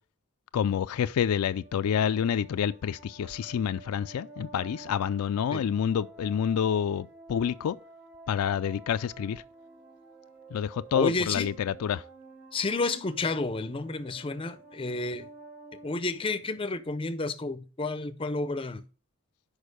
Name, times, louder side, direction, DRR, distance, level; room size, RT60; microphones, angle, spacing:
voice 1, 0.5-7.8 8.3-9.4 10.5-12.0, left 8 dB, 85° left, 0.3 m, -28 dB
sound 1, 1.5-16.9, right 2 dB, 45° right, 1.4 m, -50 dB
voice 2, 11.0-11.5 12.5-15.3 15.8-18.9, left 3 dB, 25° left, 0.5 m, -31 dB
6.4 x 5.1 x 5.0 m
head